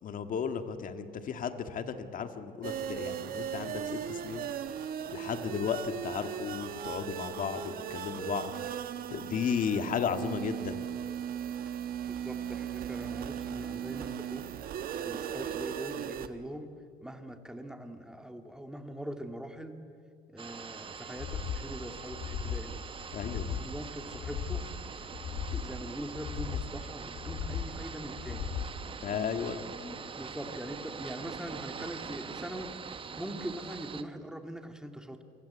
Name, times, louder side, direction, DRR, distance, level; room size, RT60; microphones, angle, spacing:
voice 1, 0.0-4.5 5.1-8.5 9.1-10.8 23.1-23.5 29.0-29.6, left 7 dB, 55° left, 7 dB, 2.1 m, -34 dB
sound 1, 2.6-16.3, right 9 dB, 60° right, 1.4 m, -37 dB
voice 2, 12.1-14.4 15.1-16.7 17.0-19.8 20.3-22.8 23.3-24.7 25.3-28.5 29.6-32.7 33.2-35.2, right 1 dB, 5° right, 5 dB, 2.3 m, -42 dB
sound 2, 20.4-34.0, right 6 dB, 30° right, 1.2 m, -43 dB
sound 3, 21.2-21.7 22.1-22.7 23.1-23.7 24.1-24.7 25.1-25.7 26.1-26.7 27.1-27.7 28.1-28.7, left 8 dB, 70° left, 2.3 m, -36 dB
28.5 x 23.5 x 8.3 m, 2.5 s
cardioid pair, 110°, 17 cm